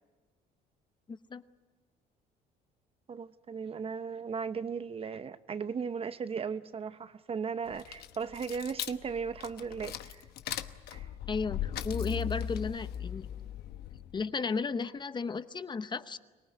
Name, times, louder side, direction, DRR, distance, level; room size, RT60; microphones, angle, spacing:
voice 1, 1.1-1.4 11.3-13.3 14.1-16.2, left 4 dB, 25° left, 0.8 m, -34 dB
voice 2, 3.1-10.2 10.9-11.1, right 6 dB, 35° right, 0.7 m, -37 dB
sound 1, 7.7-14.2, left 9 dB, 70° left, 1.1 m, -38 dB
25.0 x 18.5 x 9.5 m
cardioid pair, 110°, 17 cm